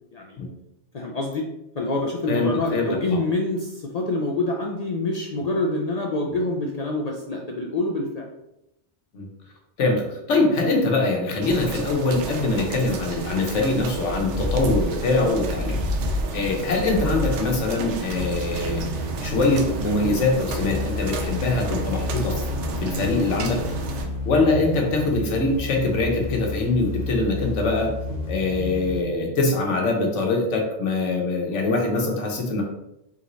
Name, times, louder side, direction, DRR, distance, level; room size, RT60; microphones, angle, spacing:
voice 1, 0.9-1.4 1.8-8.3, left 2 dB, 60° left, 0 dB, 0.4 m, -26 dB
voice 2, 2.3-3.2 6.2-6.3 9.1-9.3 9.8-15.8 16.1-22.4 22.8-23.6 24.2-27.9 28.3-32.6, left 2 dB, 90° left, 1 dB, 1.2 m, -23 dB
sound 1, 11.4-24.1, right 3 dB, 80° right, 0.9 m, -32 dB
sound 2, 14.1-29.0, left 2 dB, 40° left, 1.1 m, -30 dB
3.9 x 3.7 x 3.0 m, 0.85 s
omnidirectional pair, 1.2 m